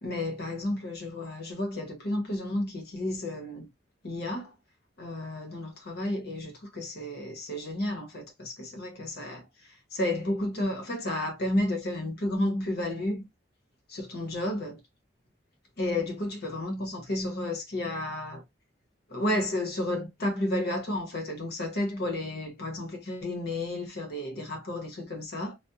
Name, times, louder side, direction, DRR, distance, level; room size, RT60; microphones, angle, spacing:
voice 1, 0.0-3.7 4.0-4.5 5.0-9.4 9.9-13.3 13.9-14.8 15.8-18.4 19.1-25.5, left 1 dB, 60° left, 0.9 m, -32 dB
2.4 x 2.1 x 2.6 m
head